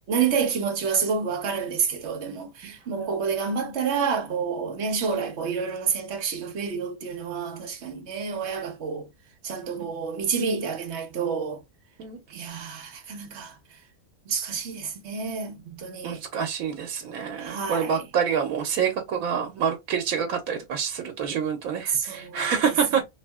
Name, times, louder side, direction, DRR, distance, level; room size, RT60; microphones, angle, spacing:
voice 1, 0.1-9.1 9.4-11.6 12.3-13.5 14.3-16.2 17.4-18.1 21.9-22.6, right 6 dB, 60° right, 1.0 m, -29 dB
voice 2, 16.0-23.0, right 7 dB, 85° right, 1.1 m, -27 dB
2.9 x 2.7 x 2.2 m
omnidirectional pair, 1.4 m